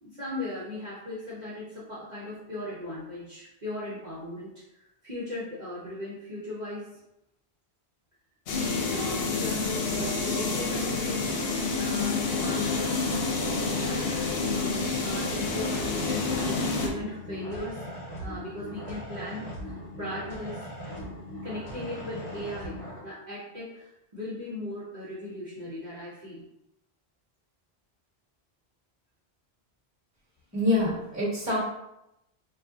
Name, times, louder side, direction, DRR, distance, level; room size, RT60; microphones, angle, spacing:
voice 1, 0.0-7.0 8.5-14.2 14.5-17.8 18.2-20.6 21.4-26.4, left 1 dB, 45° right, -10 dB, 0.9 m, -38 dB
sound 1, 8.5-16.9, left 3 dB, 70° left, 0.8 m, -28 dB
sound 2, 15.4-23.0, equal, 40° left, 1.0 m, -39 dB
voice 2, 30.5-31.6, left 2 dB, 15° right, -6 dB, 1.2 m, -25 dB
2.6 x 2.3 x 3.5 m, 0.87 s
omnidirectional pair, 1.0 m